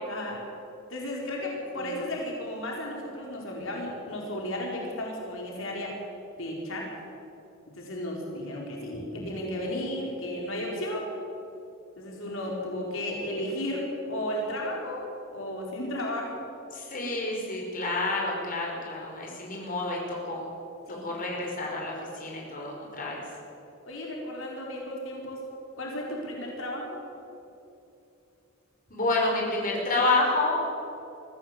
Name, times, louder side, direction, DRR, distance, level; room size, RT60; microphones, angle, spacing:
voice 1, 0.0-0.4 0.9-6.0 6.3-6.9 7.8-11.1 12.0-16.4 20.9-21.1 23.9-25.5 25.8-27.0, left 1 dB, 80° left, -2 dB, 4.7 m, -34 dB
voice 2, 16.7-20.5 21.0-23.2 28.9-30.6, left 2 dB, 45° left, -2 dB, 5.5 m, -29 dB
23.5 x 15.5 x 8.1 m, 2.8 s
head